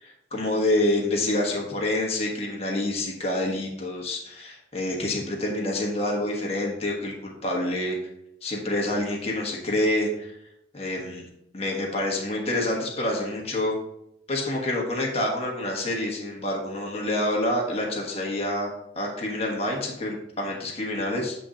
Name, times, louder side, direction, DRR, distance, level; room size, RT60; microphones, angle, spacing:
voice 1, 0.0-8.0 8.4-10.3 10.7-11.2 11.5-13.7 14.3-21.3, left 1 dB, 30° left, -2 dB, 1.3 m, -27 dB
7.6 x 3.8 x 4.2 m, 0.80 s
head